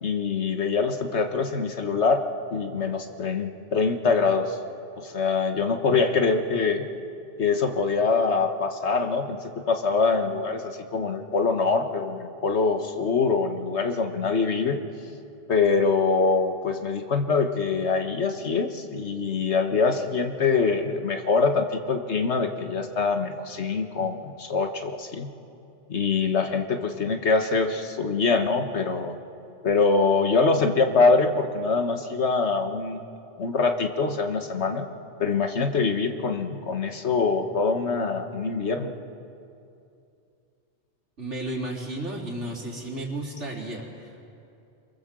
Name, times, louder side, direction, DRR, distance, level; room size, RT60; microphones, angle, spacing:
voice 1, 0.0-2.2 2.5-4.6 5.0-6.9 7.4-14.8 15.5-25.3 25.9-29.2 29.6-33.0 33.4-34.9 35.2-38.9, left 4 dB, 70° left, 6 dB, 1.7 m, -24 dB
voice 2, 41.2-44.3, right 1 dB, 85° right, -2 dB, 4.0 m, -33 dB
26.5 x 23.5 x 7.6 m, 2.6 s
omnidirectional pair, 1.2 m